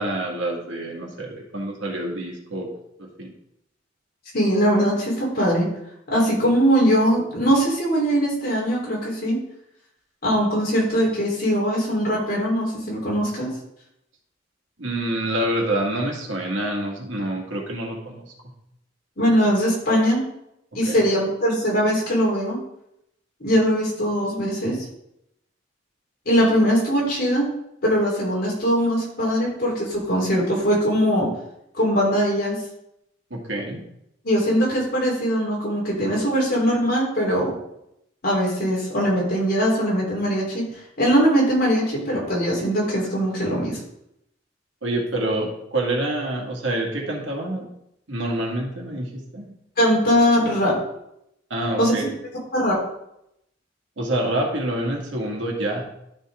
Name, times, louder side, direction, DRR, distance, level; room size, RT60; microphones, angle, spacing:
voice 1, 0.0-2.7 3.0-3.3 14.8-18.3 20.9-21.0 33.3-33.8 44.8-47.7 48.1-49.5 51.5-52.0 54.0-55.8, right 1 dB, 90° right, -1 dB, 2.1 m, -27 dB
voice 2, 4.3-5.7 6.1-9.4 10.2-13.5 19.2-20.2 20.7-22.6 23.4-24.8 26.3-27.5 27.8-31.3 31.7-32.6 34.2-37.5 38.2-40.7 41.0-43.8 49.8-50.7 51.8-51.9 52.5-52.8, equal, 55° left, -4 dB, 4.0 m, -21 dB
12.0 x 5.5 x 3.8 m, 0.80 s
head